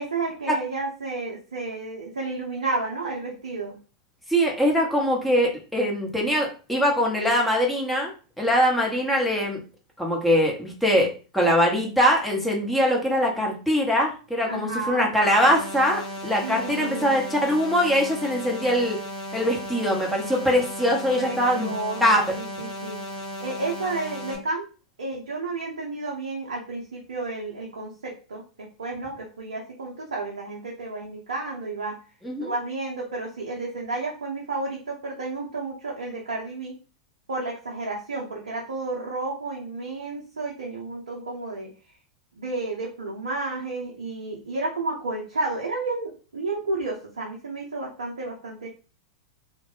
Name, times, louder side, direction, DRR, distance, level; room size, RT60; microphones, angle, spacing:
voice 1, 0.0-3.8 14.5-15.1 16.4-17.2 21.2-23.0 23.4-24.7 25.0-32.0 32.4-36.7 37.3-41.7 42.4-48.7, right 3 dB, 80° right, -2 dB, 0.6 m, -31 dB
voice 2, 4.3-8.1 8.4-9.6 10.0-19.0 19.3-21.7 22.0-22.2 32.2-32.5, equal, ahead, -2 dB, 0.9 m, -22 dB
sound 1, 15.4-24.4, equal, 30° left, 0.6 m, -35 dB
2.3 x 2.1 x 3.0 m, 0.35 s
hypercardioid pair, 95°, 3 cm